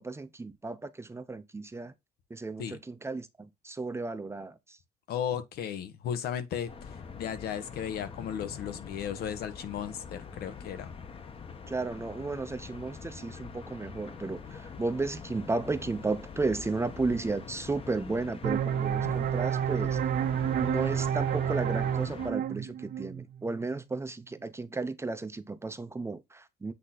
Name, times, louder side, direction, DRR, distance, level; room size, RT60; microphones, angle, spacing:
voice 1, 0.0-1.9 2.3-4.8 11.7-20.0 20.6-26.7, right 3 dB, 15° right, 0.7 m, -34 dB
voice 2, 5.1-10.9 18.9-19.2, left 9 dB, 70° left, 1.2 m, -35 dB
sound 1, 6.7-22.3, left 6 dB, 35° left, 1.1 m, -44 dB
sound 2, 18.4-23.8, right 9 dB, 55° right, 0.6 m, -30 dB
8.2 x 2.9 x 4.0 m
cardioid pair, 110°, 17 cm